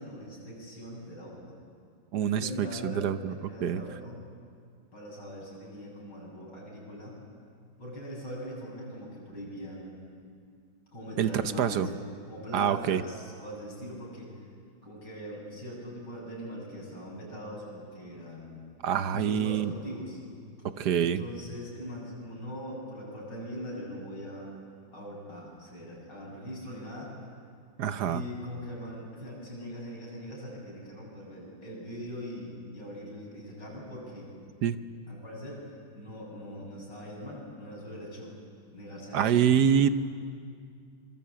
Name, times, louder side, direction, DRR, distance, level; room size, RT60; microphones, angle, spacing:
voice 1, 0.0-1.5 2.3-4.2 4.9-7.2 7.8-10.0 10.9-11.9 12.3-14.4 14.8-18.6 19.1-20.2 21.0-24.5 24.9-27.1 28.0-34.3 35.1-38.3 38.7-39.4, equal, 55° left, -3 dB, 8.5 m, -41 dB
voice 2, 2.1-3.8 11.2-11.9 12.5-13.0 18.8-19.7 20.6-21.2 27.8-28.2 34.6-34.8 39.1-39.9, right 8 dB, 60° right, 11 dB, 1.3 m, -26 dB
26.5 x 24.0 x 8.6 m, 2.2 s
omnidirectional pair, 2.3 m